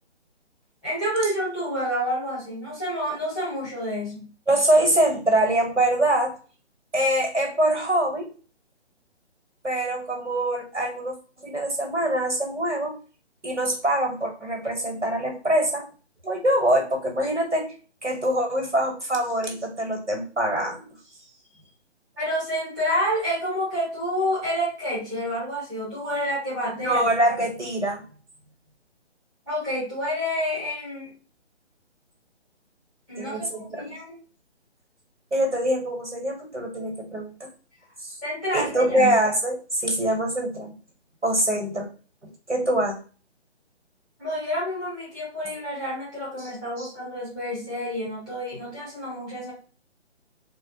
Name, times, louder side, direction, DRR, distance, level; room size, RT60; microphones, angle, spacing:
voice 1, 0.8-4.3 22.1-27.1 29.5-31.1 33.1-34.2 38.2-39.2 44.2-49.5, equal, ahead, -8 dB, 1.0 m, -29 dB
voice 2, 4.5-6.4 6.9-8.3 9.6-13.0 13.4-15.8 16.2-17.7 18.0-20.8 26.8-28.0 33.2-33.9 35.3-37.5 38.0-38.2 38.5-40.7 41.2-41.9 42.5-43.0 46.8-46.9, right 1 dB, 90° right, 2 dB, 1.4 m, -24 dB
3.4 x 2.3 x 2.8 m, 0.37 s
figure-of-eight pair, 145°, 34 cm